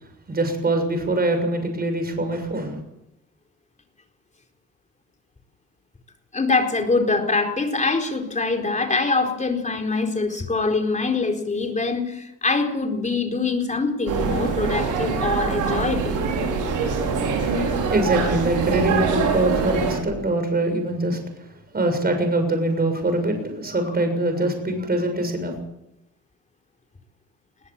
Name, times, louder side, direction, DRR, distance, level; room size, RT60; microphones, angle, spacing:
voice 1, 0.3-2.8 17.9-21.5 21.7-25.5, right 1 dB, 30° right, 6 dB, 6.8 m, -23 dB
voice 2, 6.3-16.2 17.8-17.9, left 3 dB, 25° left, 4 dB, 4.4 m, -24 dB
sound 1, 14.1-20.0, right 5 dB, 85° right, 6.1 m, -24 dB
21.0 x 18.5 x 7.4 m, 0.85 s
cardioid pair, 90°, 30 cm